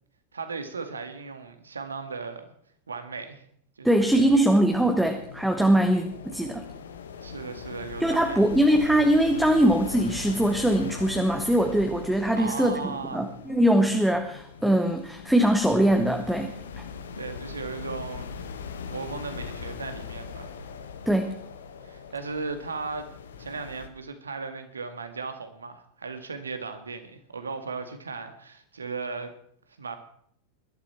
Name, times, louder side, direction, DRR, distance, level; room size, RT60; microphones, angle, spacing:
voice 1, 0.3-2.5 2.9-3.5 3.8-4.2 7.2-8.7 12.3-13.3 17.2-18.4 18.9-20.6 21.8-23.1 23.4-29.3 29.8-30.0, right 4 dB, 75° right, 8 dB, 2.0 m, -36 dB
voice 2, 3.8-6.6 8.0-16.5 21.1-21.3, right 1 dB, 5° right, 5 dB, 1.4 m, -22 dB
sound 1, 4.1-23.9, left 6 dB, 65° left, 1.5 m, -41 dB
21.0 x 12.5 x 4.5 m, 0.66 s
figure-of-eight pair, 90°, 0 cm